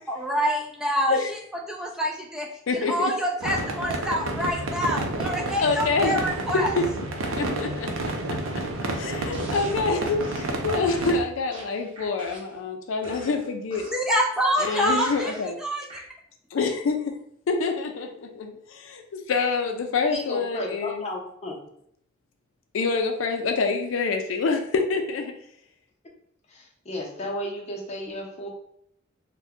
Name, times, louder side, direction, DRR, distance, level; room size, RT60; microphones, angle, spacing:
voice 1, 0.1-6.8 13.9-15.3 15.6-15.9, equal, 5° right, -1 dB, 0.3 m, -26 dB
voice 2, 2.7-3.1 5.6-6.1 6.5-6.8 7.3-7.9 8.9-13.9 14.7-15.6 16.5-17.2 17.5-21.0 22.7-25.3, left 4 dB, 80° left, 5 dB, 0.4 m, -26 dB
sound 1, 3.4-11.2, right 2 dB, 80° right, 0.5 m, -30 dB
sound 2, 9.3-9.8 10.2-10.5 10.9-12.6 13.0-14.1 14.6-15.4 15.9-16.0, right 1 dB, 25° right, 0.8 m, -43 dB
voice 3, 20.1-21.7 26.5-28.5, left 1 dB, 35° left, -1 dB, 0.6 m, -34 dB
2.6 x 2.2 x 3.4 m, 0.69 s
head